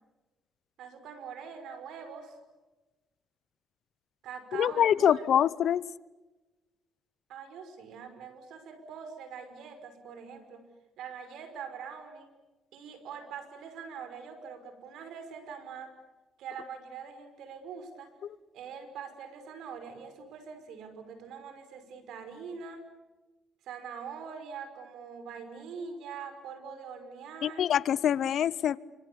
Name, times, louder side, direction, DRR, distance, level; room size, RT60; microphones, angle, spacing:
voice 1, 0.8-2.4 4.2-5.5 7.3-10.7 11.0-12.3 12.7-15.9 16.4-18.1 18.5-22.9 23.6-27.7, right 6 dB, 85° right, 5.5 m, -43 dB
voice 2, 4.5-5.8 27.4-28.8, left 9 dB, 70° left, 0.8 m, -25 dB
30.0 x 26.5 x 7.1 m
cardioid pair, 90°, 0 cm